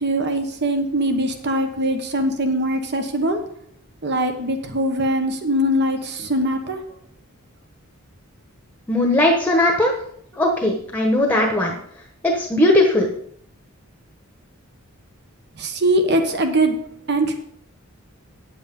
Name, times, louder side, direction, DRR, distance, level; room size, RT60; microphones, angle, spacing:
voice 1, 0.0-3.4 4.0-6.8 15.6-16.8 17.1-17.3, right 1 dB, 50° right, 6 dB, 1.2 m, -21 dB
voice 2, 8.9-9.9 10.3-11.7 12.3-13.1, left 1 dB, 10° left, 1 dB, 1.1 m, -18 dB
9.4 x 8.0 x 5.3 m, 0.66 s
head